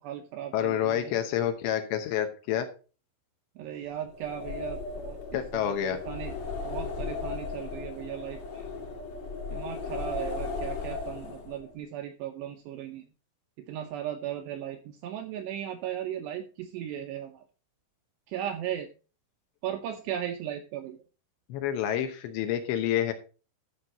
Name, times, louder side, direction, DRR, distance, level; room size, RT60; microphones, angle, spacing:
voice 1, 0.0-1.2 3.6-6.4 6.6-8.7 9.5-13.1 13.6-17.4 18.3-18.9 19.6-21.0, right 10 dB, 80° right, 6 dB, 2.4 m, -37 dB
voice 2, 0.5-2.7 5.3-6.0 21.5-23.1, left 10 dB, 75° left, 7 dB, 2.9 m, -28 dB
sound 1, 4.1-11.7, left 4 dB, 50° left, 2.1 m, -36 dB
12.5 x 6.0 x 4.1 m, 0.35 s
omnidirectional pair, 5.6 m